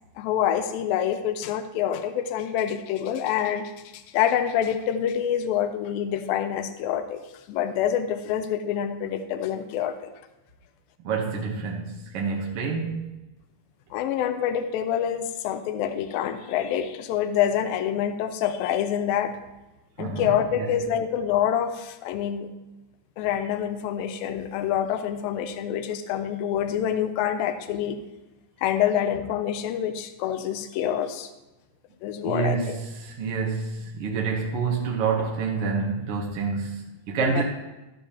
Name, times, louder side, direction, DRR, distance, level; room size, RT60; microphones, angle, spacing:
voice 1, 0.2-7.2 7.5-10.1 13.9-19.3 20.0-22.5 23.2-28.0 28.6-31.3 32.0-32.8 37.2-37.4, left 9 dB, 90° left, 9 dB, 2.4 m, -26 dB
voice 2, 11.0-13.1 20.0-20.3 20.5-20.7 32.2-37.4, right 5 dB, 65° right, 0 dB, 1.4 m, -28 dB
12.5 x 10.0 x 2.9 m, 1.0 s
omnidirectional pair, 4.1 m